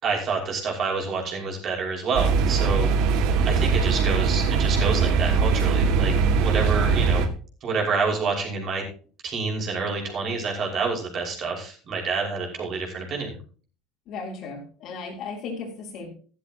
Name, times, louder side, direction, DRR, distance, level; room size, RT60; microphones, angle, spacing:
voice 1, 0.0-2.9 3.5-7.2 7.6-8.8 9.2-13.3, right 4 dB, 35° right, 0 dB, 5.7 m, -28 dB
sound 1, 2.1-7.3, right 5 dB, 60° right, 2.2 m, -21 dB
voice 2, 14.1-16.1, left 4 dB, 45° left, -4 dB, 4.2 m, -36 dB
13.5 x 13.5 x 3.0 m, 0.39 s
cardioid pair, 155°, 0 cm